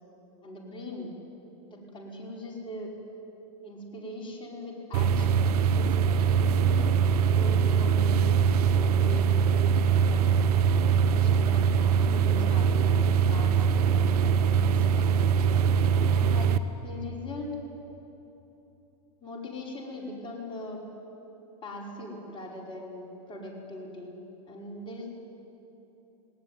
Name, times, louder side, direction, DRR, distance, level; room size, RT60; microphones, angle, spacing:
voice 1, 0.4-1.1 1.6-2.9 3.6-6.9 7.3-8.3 8.8-10.6 11.1-13.0 13.3-15.5 16.1-16.6 16.8-17.6 19.2-20.8 21.6-24.2 24.5-25.1, left 1 dB, 25° left, -2 dB, 5.4 m, -41 dB
sound 1, 4.9-16.6, right 7 dB, 65° right, 1.0 m, -23 dB
19.0 x 18.0 x 9.4 m, 3.0 s
hypercardioid pair, 115°, 21 cm